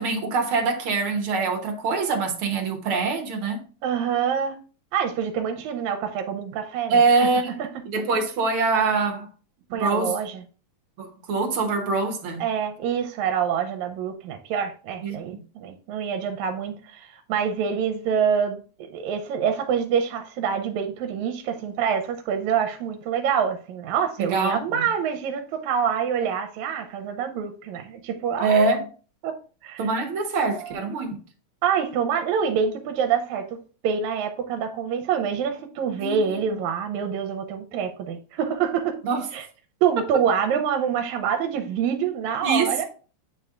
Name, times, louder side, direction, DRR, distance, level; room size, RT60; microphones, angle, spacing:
voice 1, 0.0-3.6 6.9-7.6 7.9-9.3 9.7-10.2 11.0-12.4 15.0-15.4 24.2-24.8 28.4-28.8 29.8-31.2 36.0-36.2 39.0-39.3 42.4-42.9, right 4 dB, 60° right, 1.7 m, -24 dB
voice 2, 3.8-4.6 4.9-6.9 7.2-7.3 9.7-10.4 12.4-18.6 18.9-28.7 29.2-29.3 29.6-29.9 30.5-31.0 31.6-33.4 33.8-39.0 39.3-39.5 39.8-42.9, right 7 dB, 80° right, 2.0 m, -26 dB
9.0 x 3.3 x 3.6 m
omnidirectional pair, 3.4 m